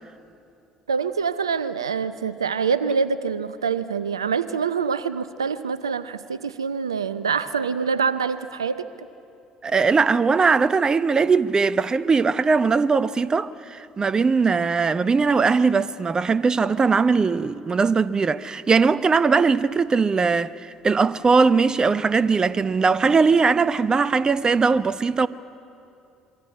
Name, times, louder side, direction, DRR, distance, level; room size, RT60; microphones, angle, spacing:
voice 1, 0.9-8.9, right 5 dB, 90° right, 0.6 m, -25 dB
voice 2, 9.6-25.3, right 4 dB, 30° right, 0.8 m, -20 dB
26.5 x 23.5 x 8.6 m
hypercardioid pair, 55°, 2 cm